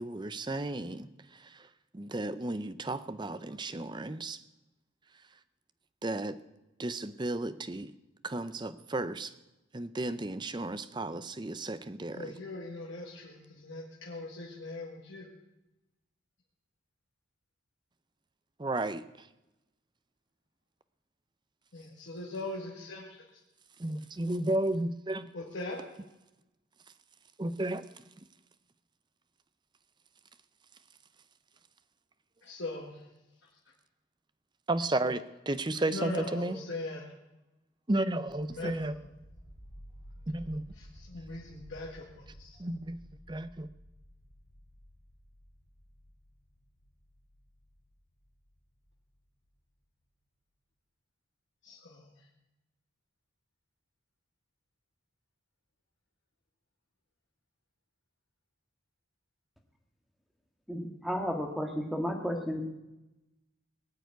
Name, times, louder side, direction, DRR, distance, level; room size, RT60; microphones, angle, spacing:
voice 1, 0.0-1.7 1.9-4.4 6.0-6.4 6.8-7.9 8.2-9.3 9.7-12.4 18.6-19.3 23.8-25.5 27.4-28.0 34.7-36.6 37.9-38.9 40.3-40.7 42.6-43.0 43.3-43.7, right 2 dB, 20° right, 13 dB, 0.6 m, -33 dB
voice 2, 12.1-15.3 21.7-23.2 25.3-25.8 32.4-33.0 35.9-37.0 38.5-39.1 40.8-42.5 51.6-52.1, left 2 dB, 65° left, -3 dB, 1.9 m, -40 dB
sound 1, 38.3-49.0, equal, 80° left, 3.2 m, -54 dB
voice 3, 60.7-62.6, equal, ahead, 2 dB, 1.8 m, -33 dB
19.5 x 6.9 x 9.3 m, 0.97 s
head